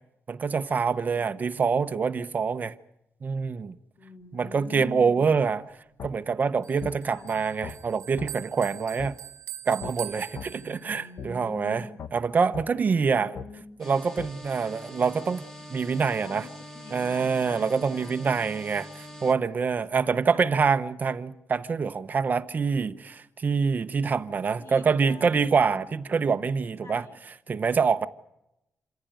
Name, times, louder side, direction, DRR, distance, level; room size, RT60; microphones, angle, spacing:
voice 1, 0.3-2.7 3.2-3.7 4.3-5.6 6.0-9.2 9.7-11.8 12.1-13.3 13.8-15.4 15.7-16.5 16.9-27.1 27.5-28.1, right 5 dB, 35° right, 0.9 m, -25 dB
voice 2, 4.0-5.3 7.1-7.3 10.4-11.9 12.7-13.6 15.9-18.5 19.9-20.5 24.5-25.4 25.8-26.4 26.8-27.2, left 4 dB, 70° left, 3.1 m, -45 dB
sound 1, 6.0-6.1 6.8-7.0 7.6-7.8 8.2-8.3 9.0-9.1 9.8-9.9 10.4-10.5 11.2-11.3 12.0-12.1 12.5-12.7 13.4-13.5 14.2-14.3, left 7 dB, 55° left, 1.1 m, -38 dB
Bell, 6.6-11.1, right 13 dB, 85° right, 1.3 m, -43 dB
sound 2, 13.8-19.3, left 1 dB, 10° left, 1.5 m, -44 dB
27.5 x 15.5 x 9.1 m
wide cardioid pair, 160°, 5 cm